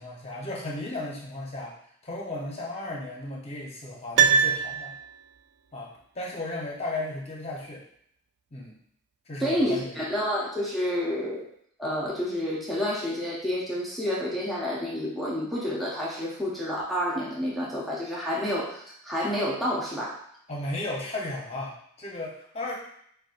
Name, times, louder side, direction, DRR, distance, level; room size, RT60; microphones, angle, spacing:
voice 1, 0.0-1.7 2.0-4.9 5.7-7.8 8.5-8.8 9.3-9.9 20.5-22.7, left 2 dB, 30° left, -3 dB, 0.8 m, -35 dB
Piano, 4.1-5.4 5.7-5.8, right 7 dB, 55° right, 0.4 m, -23 dB
voice 2, 9.4-11.5 11.8-20.1, equal, ahead, -6 dB, 0.6 m, -29 dB
5.2 x 2.3 x 2.5 m, 0.68 s
head